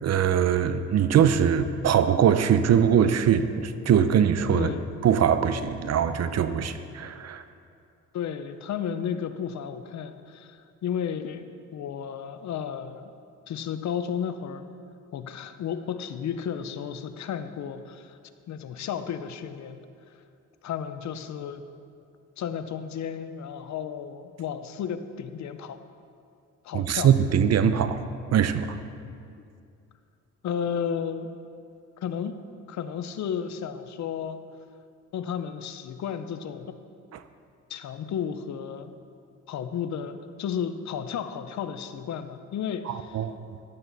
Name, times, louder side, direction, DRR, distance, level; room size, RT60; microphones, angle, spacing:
voice 1, 0.0-4.7 5.0-7.4 26.7-28.0 28.3-28.8 42.9-43.3, right 8 dB, 55° right, 11 dB, 0.8 m, -22 dB
voice 2, 4.5-4.9 8.1-11.5 11.7-13.1 13.5-14.6 15.1-18.2 18.5-19.8 20.6-21.6 22.4-25.8 26.6-27.1 30.4-31.3 32.0-32.4 32.7-34.4 35.1-36.8 37.7-38.9 39.5-43.2, left 8 dB, 65° left, 10 dB, 0.8 m, -33 dB
14.0 x 11.5 x 4.1 m, 2.4 s
cardioid pair, 90°, 30 cm